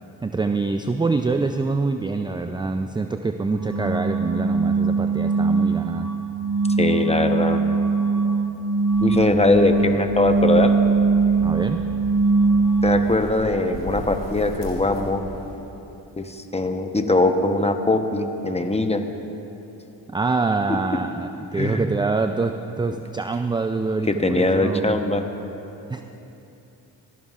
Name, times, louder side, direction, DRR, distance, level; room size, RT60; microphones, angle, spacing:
voice 1, 0.2-6.1 11.4-11.9 20.1-24.9 25.9-26.0, right 3 dB, 10° right, 7 dB, 0.3 m, -25 dB
sound 1, 3.6-13.3, right 4 dB, 40° right, 1.4 m, -21 dB
voice 2, 6.8-7.6 9.0-10.7 12.8-15.2 16.2-19.0 21.5-21.8 24.1-25.2, left 2 dB, 15° left, 6 dB, 0.9 m, -21 dB
sound 2, 8.9-15.6, left 2 dB, 75° left, 2.0 m, -38 dB
17.0 x 11.0 x 2.4 m, 2.9 s
supercardioid pair, 50°, 44 cm